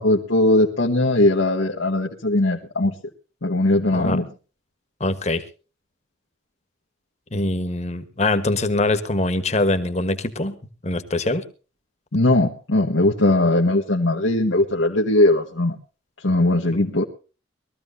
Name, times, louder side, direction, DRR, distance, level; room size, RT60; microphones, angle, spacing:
voice 1, 0.0-2.9 3.4-4.2 12.1-15.7 16.2-17.0, left 1 dB, 85° left, -1 dB, 1.4 m, -19 dB
voice 2, 5.0-5.4 7.3-10.6 10.8-11.4, left 2 dB, 35° left, 10 dB, 1.3 m, -23 dB
22.0 x 14.0 x 2.7 m, 0.35 s
head